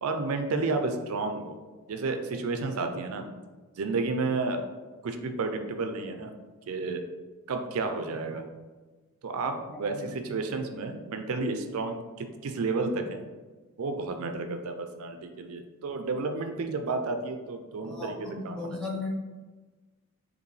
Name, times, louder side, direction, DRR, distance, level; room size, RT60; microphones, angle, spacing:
voice 1, 0.0-1.6 1.9-3.2 3.8-4.6 5.0-6.3 6.7-7.0 7.5-8.4 9.2-13.2 13.8-18.8, right 3 dB, 80° right, 6 dB, 0.4 m, -31 dB
voice 2, 9.7-10.1 17.8-19.1, left 3 dB, 5° left, -4 dB, 0.7 m, -37 dB
5.1 x 2.6 x 3.2 m, 1.3 s
head